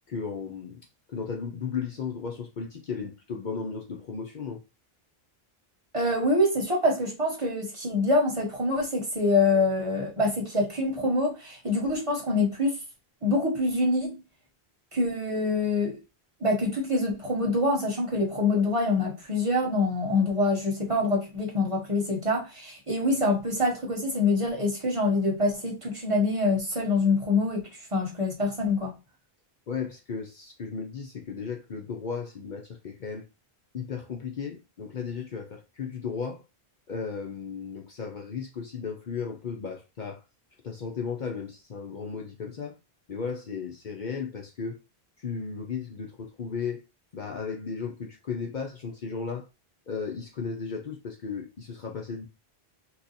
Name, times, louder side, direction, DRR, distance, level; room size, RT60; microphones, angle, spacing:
voice 1, 0.1-0.8 1.1-4.6 29.7-33.2 33.7-36.4 36.9-40.2 40.6-42.8 43.1-44.8 45.2-46.8 47.1-49.5 49.9-52.3, left 5 dB, 55° left, 0.7 m, -35 dB
voice 2, 5.9-12.8 13.2-14.1 14.9-16.0 16.4-28.9, left 2 dB, 30° right, 1.1 m, -25 dB
2.8 x 2.4 x 3.9 m
omnidirectional pair, 1.1 m